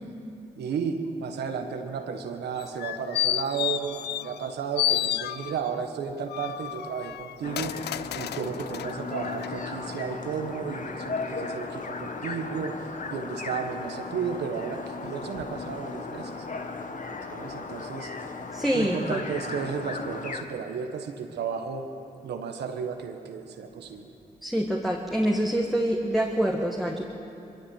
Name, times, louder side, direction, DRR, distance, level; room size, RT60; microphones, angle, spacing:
voice 1, 0.6-7.8 8.1-12.8 13.1-16.5 17.3-18.1 18.7-21.9 22.2-24.1, right 6 dB, 85° right, 5 dB, 1.4 m, -33 dB
sound 1, 2.6-4.5 4.8-5.8 6.3-8.9 9.4-9.5, left 13 dB, 85° left, 0.5 m, -30 dB
sound 2, 7.4-20.4, left 4 dB, 50° left, 1.7 m, -36 dB
voice 2, 18.5-19.2 24.4-27.0, right 1 dB, ahead, -1 dB, 1.8 m, -26 dB
22.0 x 15.0 x 8.0 m, 2.8 s
supercardioid pair, 50°, 17 cm